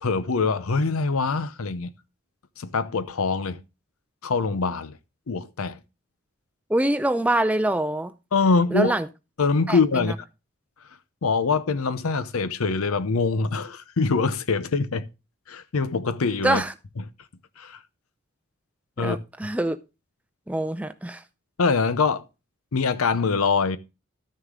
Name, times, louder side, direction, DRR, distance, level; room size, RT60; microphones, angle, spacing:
voice 1, 0.0-1.9 2.6-3.6 4.2-5.0 5.3-5.8 8.3-8.9 9.4-10.1 11.2-15.0 15.5-16.6 17.6-17.8 19.0-19.2 21.6-22.2 22.7-23.8, left 4 dB, 85° left, 0.7 m, -24 dB
voice 2, 6.7-8.1 8.7-9.1 9.7-10.1 16.4-16.7 19.0-19.8 20.5-21.2, right 1 dB, 5° right, 0.5 m, -24 dB
12.5 x 6.6 x 3.6 m
head